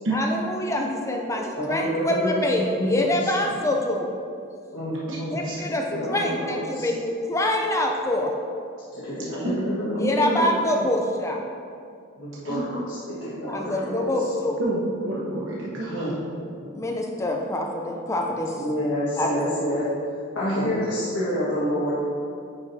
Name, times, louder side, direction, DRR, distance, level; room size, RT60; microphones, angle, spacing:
voice 1, 0.1-4.1 5.3-8.3 10.0-11.4 13.5-14.6 16.7-18.5 19.2-19.3, left 1 dB, 15° left, 1 dB, 0.4 m, -25 dB
voice 2, 1.6-3.5 4.7-5.4 6.0-6.9 9.0-10.6 12.2-14.1 15.9-16.1 16.6-16.7 18.5-19.8 20.3-21.9, equal, 60° left, -10 dB, 1.5 m, -28 dB
voice 3, 10.0-10.4 12.4-12.6 14.6-16.1, right 1 dB, 65° right, -6 dB, 1.0 m, -28 dB
9.7 x 5.0 x 2.7 m, 2.4 s
head